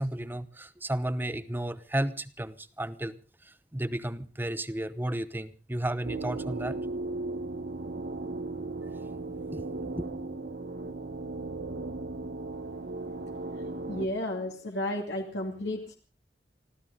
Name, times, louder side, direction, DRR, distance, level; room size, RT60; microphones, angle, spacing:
voice 1, 0.0-3.1 3.4-6.8 9.5-10.1, right 1 dB, 10° right, 0.9 m, -33 dB
sound 1, 6.0-14.1, right 3 dB, 65° right, 1.3 m, -36 dB
voice 2, 13.9-15.9, left 1 dB, 80° left, 2.5 m, -32 dB
25.5 x 15.0 x 3.7 m
head